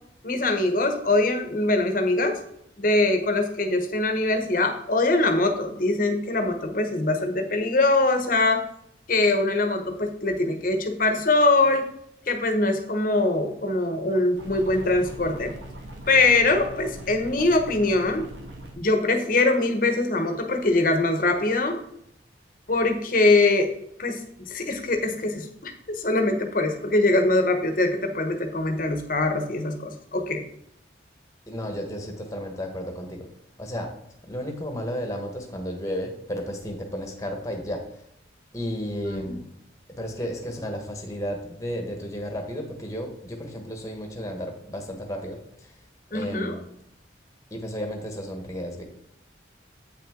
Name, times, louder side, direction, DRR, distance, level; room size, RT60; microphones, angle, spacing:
voice 1, 0.2-2.4 2.8-8.6 9.1-11.9 12.3-15.5 16.1-18.3 18.7-21.8 22.7-23.7 24.0-24.2 24.5-30.4 39.0-39.4 46.1-46.6, left 2 dB, 45° left, 5 dB, 1.0 m, -23 dB
sound 1, 14.3-18.7, right 1 dB, 70° right, 1.4 m, -41 dB
voice 2, 31.5-33.3 33.6-33.9 34.3-37.8 38.5-39.5 39.9-45.7 46.1-46.6 47.5-48.8, equal, 15° left, 3 dB, 1.2 m, -33 dB
8.3 x 5.8 x 3.7 m, 0.74 s
head